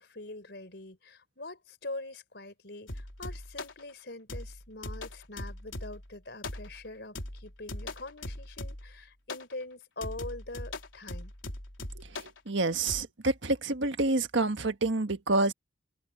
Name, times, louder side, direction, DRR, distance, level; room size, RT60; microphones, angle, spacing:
voice 1, 0.0-11.3, left 2 dB, 60° left, 4.5 m, -43 dB
sound 1, 2.9-3.8 4.3-6.1 6.4-6.9 7.1-9.0 9.3-9.5 10.0-12.4 12.9-13.0, left 2 dB, 85° left, 4.1 m, -40 dB
voice 2, 12.0-15.5, right 2 dB, 75° right, 1.5 m, -28 dB
head